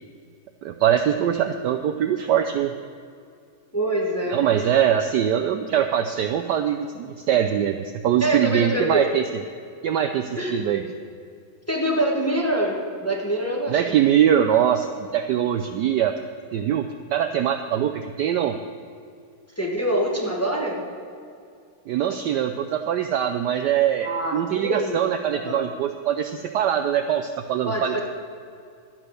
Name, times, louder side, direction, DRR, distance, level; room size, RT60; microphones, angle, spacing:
voice 1, 0.6-2.7 4.3-9.2 9.8-10.8 13.7-14.9 15.1-16.1 16.5-18.6 21.9-28.0, right 9 dB, 75° right, 7 dB, 1.0 m, -22 dB
voice 2, 3.7-4.5 8.2-9.1 10.3-10.6 11.7-14.1 19.6-20.8 24.0-25.0 25.3-25.7 27.6-28.0, right 1 dB, 10° left, -2 dB, 1.2 m, -25 dB
12.0 x 9.0 x 6.5 m, 2.3 s
omnidirectional pair, 2.3 m